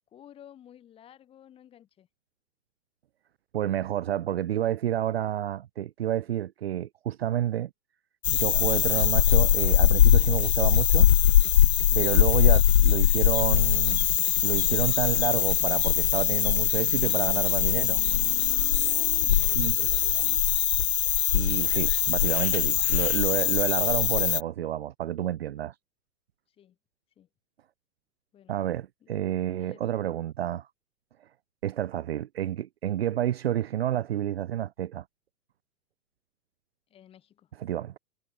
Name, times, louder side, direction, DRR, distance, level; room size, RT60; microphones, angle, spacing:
voice 1, 0.0-2.1 11.7-12.1 18.9-20.3 26.6-26.8 27.2-27.3 28.3-28.6 29.5-29.9 36.9-37.5, left 10 dB, 10° left, 6.6 m, -52 dB
voice 2, 3.5-7.7 8.3-11.1 11.9-14.0 14.4-18.0 19.6-19.8 21.3-25.7 28.5-30.7 31.6-35.0 37.6-37.9, right 11 dB, 40° right, 1.0 m, -29 dB
sound 1, 8.2-24.4, left 11 dB, 45° left, 0.6 m, -22 dB
sound 2, 8.3-19.6, left 9 dB, 70° left, 3.2 m, -46 dB
hypercardioid pair, 180°, 45 cm